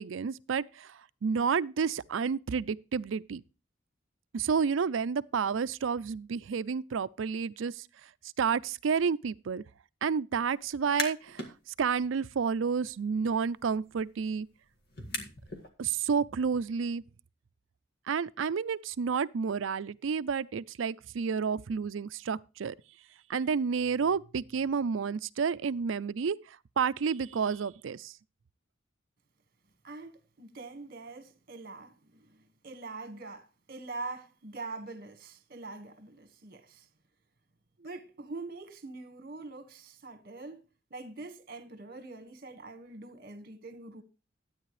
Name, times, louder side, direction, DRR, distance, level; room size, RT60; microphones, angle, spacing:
voice 1, 0.0-3.4 4.3-7.9 8.4-9.6 10.0-11.4 11.8-14.5 15.8-17.0 18.1-22.7 23.3-26.4 26.8-28.1, right 6 dB, 80° right, 0.4 m, -30 dB
sound 1, 10.7-11.5 11.9-15.7, left 2 dB, 55° left, 1.9 m, -41 dB
voice 2, 29.8-36.9 37.8-40.6 40.9-44.0, right 3 dB, 50° right, 1.7 m, -44 dB
12.5 x 9.1 x 3.2 m
head